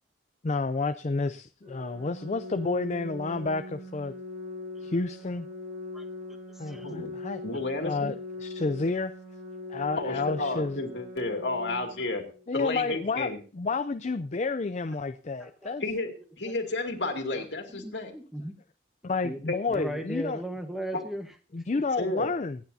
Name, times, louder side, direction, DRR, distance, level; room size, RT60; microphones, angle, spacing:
voice 1, 0.4-4.1 4.8-5.5 6.6-7.4 7.8-8.1 8.4-9.1 9.7-10.8 12.5-15.8 19.0-20.4 21.5-22.6, left 3 dB, 40° left, 10 dB, 0.5 m, -30 dB
Organ, 1.6-12.6, left 2 dB, 40° right, 6.5 m, -41 dB
voice 2, 6.5-6.9 15.0-15.1 15.4-15.7 17.3-17.5 17.7-18.6 19.2-21.3 21.7-21.8, right 1 dB, ahead, 5 dB, 1.2 m, -37 dB
voice 3, 7.4-8.1 10.0-12.3 12.5-13.4 15.8-16.1 16.4-18.1 19.5-19.6 20.9-21.0 22.0-22.3, left 2 dB, 80° left, 3 dB, 2.5 m, -31 dB
24.5 x 9.6 x 2.8 m, 0.36 s
head